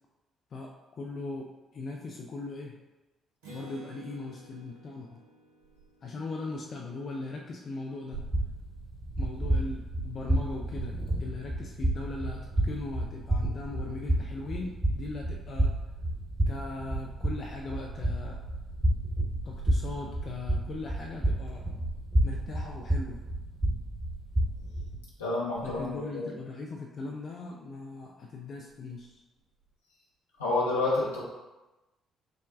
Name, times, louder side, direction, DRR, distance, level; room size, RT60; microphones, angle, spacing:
voice 1, 0.5-2.7 3.5-5.2 6.0-8.2 9.2-10.9 11.2-15.7 16.5-18.4 19.4-21.6 22.2-23.2 25.6-29.2, left 3 dB, 50° left, 0 dB, 0.4 m, -39 dB
Acoustic guitar, 3.4-7.1, equal, 80° right, 0.6 m, -52 dB
sound 1, 8.1-25.0, right 1 dB, 30° right, 1.3 m, -30 dB
voice 2, 25.2-26.3 30.4-31.2, left 2 dB, 80° left, -6 dB, 0.8 m, -29 dB
5.9 x 2.2 x 2.4 m, 1.1 s
figure-of-eight pair, 45°, 0 cm